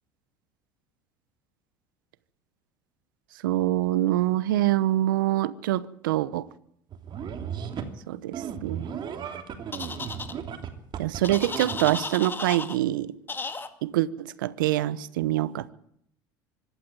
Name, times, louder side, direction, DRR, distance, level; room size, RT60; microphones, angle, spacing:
voice 1, 3.4-6.5 8.1-8.3 8.6-8.9 11.0-13.1 13.8-15.7, right 14 dB, 85° right, 1.0 m, -25 dB
sound 1, 6.9-7.9 8.3-12.0, right 7 dB, 45° right, 3.2 m, -35 dB
sound 2, 9.7-10.3 11.2-12.8 13.3-13.7, left 4 dB, 20° left, 2.4 m, -34 dB
24.5 x 12.5 x 9.0 m
hypercardioid pair, 80°, 11 cm